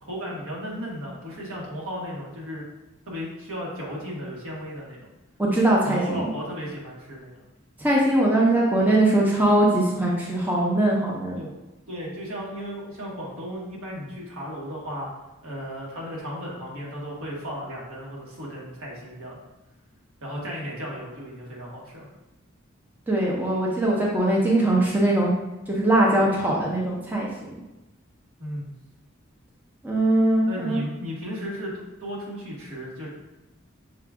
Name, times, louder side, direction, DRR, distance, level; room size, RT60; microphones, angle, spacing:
voice 1, 0.0-2.7 3.1-5.1 5.8-7.4 11.3-11.5 11.9-15.1 15.4-19.4 20.2-22.1 28.4-28.7 30.5-33.1, equal, 80° right, -4 dB, 1.4 m, -35 dB
voice 2, 5.4-6.2 7.8-11.4 23.1-25.3 25.7-27.5 29.8-30.8, right 1 dB, 10° right, -4 dB, 0.6 m, -21 dB
5.7 x 2.4 x 3.5 m, 1.0 s
head